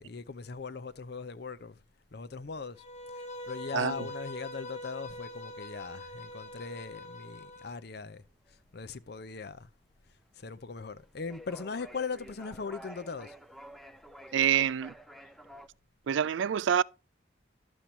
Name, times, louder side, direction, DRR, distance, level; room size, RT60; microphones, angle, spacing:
voice 1, 0.0-1.8 2.1-2.8 3.1-9.7 10.3-13.4, left 5 dB, 55° left, 0.6 m, -40 dB
Bowed string instrument, 2.8-7.8, left 1 dB, 35° left, 1.3 m, -43 dB
voice 2, 3.7-4.0 14.3-14.9 16.1-16.8, right 8 dB, 75° right, 0.4 m, -26 dB
sound 1, 6.3-15.7, equal, ahead, 0.6 m, -51 dB
11.5 x 7.4 x 2.7 m
head